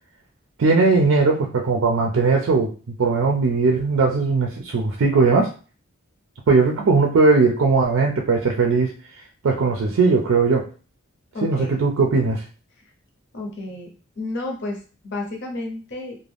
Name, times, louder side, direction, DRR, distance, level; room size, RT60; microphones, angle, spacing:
voice 1, 0.6-5.5 6.5-8.9 9.4-10.7 11.4-12.4, right 4 dB, 70° right, 1 dB, 0.4 m, -19 dB
voice 2, 11.3-11.8 13.3-13.9 14.2-16.2, left 2 dB, 55° left, 1 dB, 0.8 m, -31 dB
2.4 x 2.1 x 3.3 m, 0.37 s
head